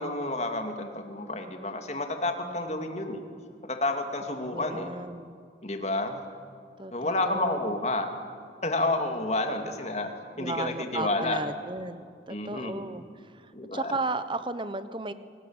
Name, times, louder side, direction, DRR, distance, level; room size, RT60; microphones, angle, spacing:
voice 1, 0.0-3.2 3.6-4.9 5.6-6.2 6.9-8.1 8.6-10.1 10.4-11.4 12.3-12.8 13.5-13.9, left 2 dB, 40° left, 5 dB, 2.5 m, -30 dB
voice 2, 2.4-2.8 4.5-5.3 6.8-7.8 10.4-15.1, right 2 dB, 25° right, 12 dB, 1.0 m, -35 dB
28.5 x 19.5 x 9.0 m, 2.3 s
head